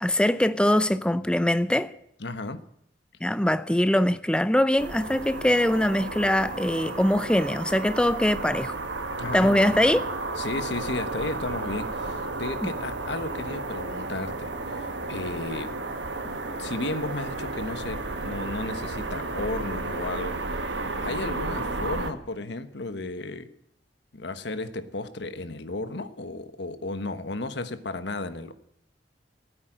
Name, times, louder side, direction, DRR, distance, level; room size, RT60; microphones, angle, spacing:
voice 1, 0.0-1.9 3.2-8.8 9.3-10.0 12.6-12.7, left 1 dB, 5° left, 0.5 m, -22 dB
voice 2, 2.2-2.6 9.2-9.9 10.4-15.8 16.2-23.5 24.1-28.5, left 2 dB, 70° left, 1.3 m, -34 dB
sound 1, 4.8-22.1, right 3 dB, 75° right, 1.7 m, -33 dB
16.5 x 9.4 x 9.0 m
head